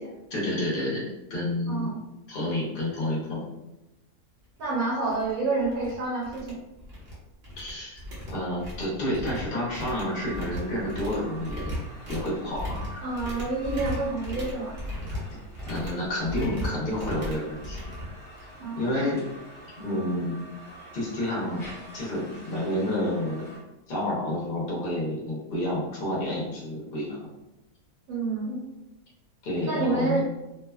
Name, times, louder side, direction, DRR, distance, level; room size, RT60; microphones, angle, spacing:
voice 1, 0.3-1.9 2.3-3.4 7.6-8.0 8.3-11.8 12.1-13.0 15.6-17.8 18.4-18.5 18.8-19.2 19.8-20.4 20.9-21.6 21.9-23.4 23.9-27.3 29.4-30.2, left 1 dB, 45° left, -4 dB, 0.8 m, -29 dB
voice 2, 1.7-2.0 4.6-6.6 13.0-14.8 18.6-19.1 28.1-28.6 29.7-30.2, right 3 dB, 70° right, -6 dB, 1.2 m, -28 dB
sound 1, 4.6-4.7 5.1-5.3 5.6-5.9 6.2-7.1 7.4-18.7, left 1 dB, 50° right, 0.9 m, -37 dB
sound 2, 10.0-23.6, right 1 dB, 25° left, 1.1 m, -47 dB
sound 3, 16.4-18.4, left 2 dB, 70° left, 1.0 m, -44 dB
2.7 x 2.2 x 2.3 m, 0.96 s
omnidirectional pair, 1.6 m